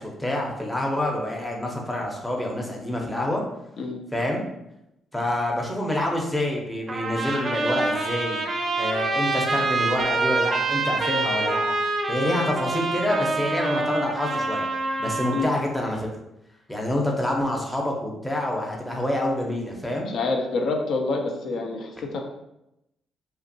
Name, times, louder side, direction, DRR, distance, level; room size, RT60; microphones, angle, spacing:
voice 1, 0.0-3.4 4.1-4.5 5.1-8.4 8.8-11.8 12.1-14.7 15.0-16.1 16.7-20.1, left 1 dB, 10° left, -1 dB, 0.6 m, -27 dB
Trumpet, 6.9-15.5, right 3 dB, 40° right, 0.4 m, -26 dB
voice 2, 20.1-22.2, left 3 dB, 65° left, 2 dB, 0.4 m, -27 dB
2.8 x 2.5 x 2.6 m, 0.87 s
cardioid pair, 90°, 0 cm